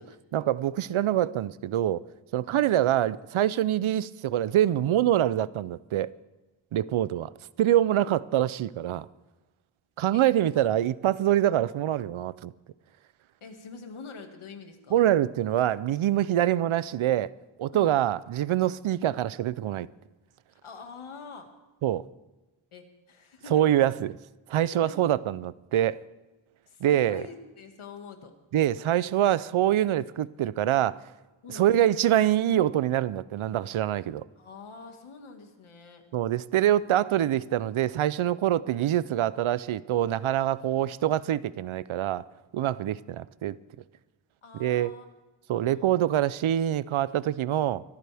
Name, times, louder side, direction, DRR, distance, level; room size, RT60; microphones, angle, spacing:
voice 1, 0.3-2.1 2.3-6.1 6.7-7.3 7.6-9.1 10.0-12.5 14.9-17.3 17.6-19.9 21.8-22.1 23.5-24.2 24.5-26.0 26.8-27.2 28.5-31.1 31.5-34.2 36.1-42.2 42.5-43.6 44.6-44.9 45.5-47.8, right 12 dB, 80° right, 0.6 m, -25 dB
voice 2, 10.1-10.6 13.4-15.1 17.7-17.9 20.5-21.5 22.7-23.8 24.6-25.0 25.7-25.8 26.7-28.3 31.4-31.9 34.4-36.0 44.4-45.1 45.5-45.9, left 5 dB, 85° left, 2.1 m, -46 dB
23.5 x 14.0 x 3.5 m
wide cardioid pair, 155°, 48 cm